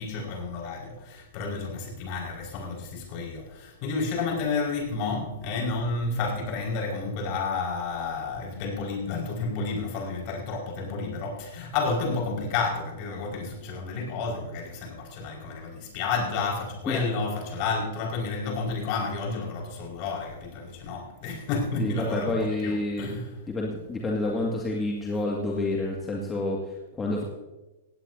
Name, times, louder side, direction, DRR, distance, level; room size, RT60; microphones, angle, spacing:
voice 1, 0.0-23.3, left 4 dB, 45° left, -1 dB, 5.1 m, -31 dB
voice 2, 21.8-23.1 23.5-27.2, left 2 dB, 15° left, -2 dB, 2.0 m, -29 dB
17.5 x 17.0 x 2.8 m, 1.1 s
hypercardioid pair, 110°, 0 cm